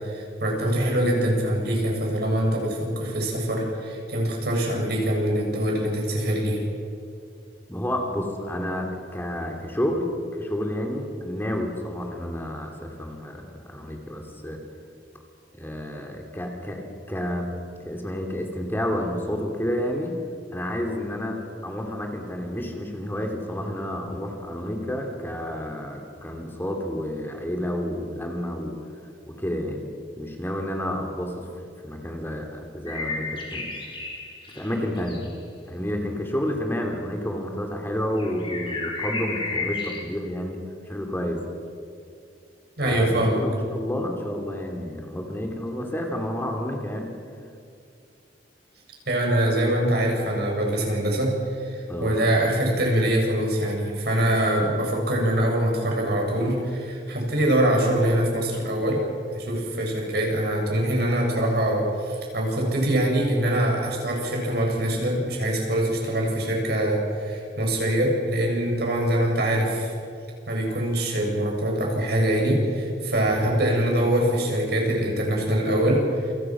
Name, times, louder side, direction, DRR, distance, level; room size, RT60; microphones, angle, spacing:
voice 1, 0.0-6.6 42.8-43.4 49.1-59.0 59.3-69.9 70.5-76.3, right 1 dB, 65° right, 0 dB, 7.2 m, -24 dB
voice 2, 7.7-10.1 10.3-14.6 15.5-17.5 17.8-20.1 20.5-21.4 21.6-28.8 29.3-29.9 30.2-31.5 31.8-33.7 34.5-35.2 35.7-41.4 42.8-47.1 51.9-52.2 73.3-73.5, equal, 15° left, 2 dB, 2.9 m, -30 dB
sound 1, 32.9-35.3 38.2-40.0, left 3 dB, 30° left, 5.0 m, -32 dB
28.5 x 26.0 x 6.2 m, 2.4 s
head